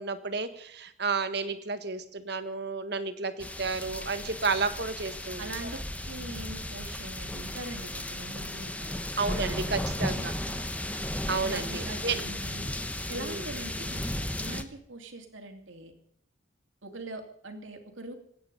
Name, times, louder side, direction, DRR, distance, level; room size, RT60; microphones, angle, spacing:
voice 1, 0.0-5.5 9.2-10.3 11.3-12.2 13.2-13.4, right 4 dB, 55° right, 10 dB, 1.6 m, -31 dB
sound 1, 3.4-14.6, left 1 dB, 5° left, 1.0 m, -35 dB
voice 2, 5.4-5.8 6.0-9.0 9.3-9.7 10.1-10.8 11.4-12.7 13.1-14.0 14.4-15.9 16.8-18.2, right 2 dB, 80° right, 5 dB, 2.9 m, -42 dB
25.5 x 9.6 x 5.5 m, 0.71 s
head